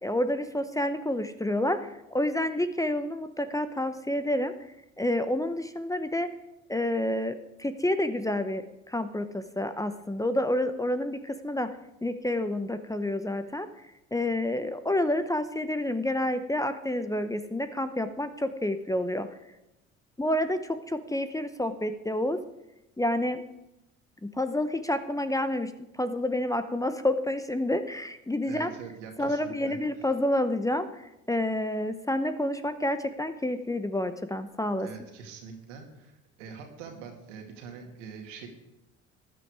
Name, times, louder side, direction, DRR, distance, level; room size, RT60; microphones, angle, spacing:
voice 1, 0.0-4.5 5.0-6.3 6.7-11.7 12.0-13.7 14.1-19.3 20.2-22.4 23.0-23.4 24.2-25.7 26.0-28.7 29.2-34.9, left 1 dB, 10° left, 10 dB, 0.8 m, -29 dB
voice 2, 28.4-29.8 34.8-38.5, right 6 dB, 75° right, 3 dB, 2.4 m, -44 dB
14.5 x 10.0 x 4.8 m, 0.91 s
hypercardioid pair, 60°, 37 cm